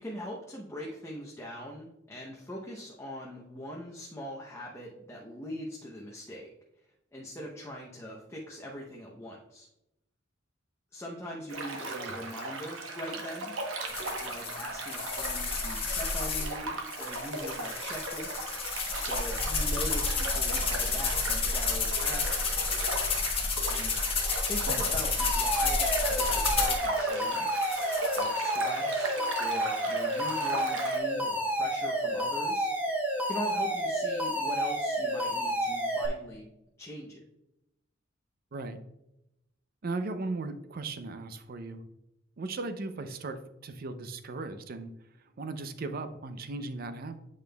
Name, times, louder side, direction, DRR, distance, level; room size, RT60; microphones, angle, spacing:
voice 1, 0.0-6.5 7.1-9.7 10.9-13.6 14.2-18.4 19.0-22.5 23.7-23.9 24.5-27.7 28.2-32.7 33.3-36.5 36.8-37.2, equal, 15° left, -2 dB, 0.7 m, -41 dB
sound 1, 11.5-31.0, right 2 dB, 80° right, 1.0 m, -37 dB
sound 2, 13.9-16.5 16.9-26.9 27.5-28.2, left 4 dB, 30° left, 1.0 m, -31 dB
Alarm, 25.2-36.1, right 1 dB, 10° right, 1.0 m, -30 dB
voice 2, 39.8-41.8 42.4-44.9 45.4-47.2, right 3 dB, 50° right, 9 dB, 0.5 m, -37 dB
8.2 x 5.1 x 2.2 m, 0.88 s
head